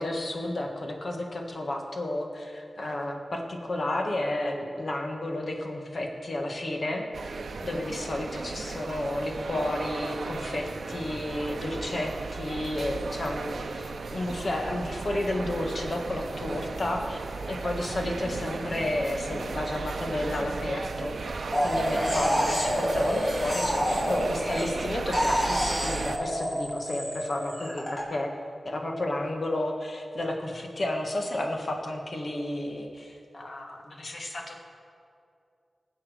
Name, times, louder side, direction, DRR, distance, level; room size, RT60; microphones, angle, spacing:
voice 1, 0.0-7.1 7.6-17.2 17.5-28.3 28.6-34.6, left 1 dB, 65° left, 2 dB, 1.6 m, -32 dB
sound 1, 7.1-26.2, right 4 dB, 90° right, 0.6 m, -35 dB
sound 2, 21.5-24.8 25.1-28.0, equal, 35° left, 3.7 m, -28 dB
19.0 x 7.2 x 5.1 m, 2.4 s
wide cardioid pair, 65°, 0 cm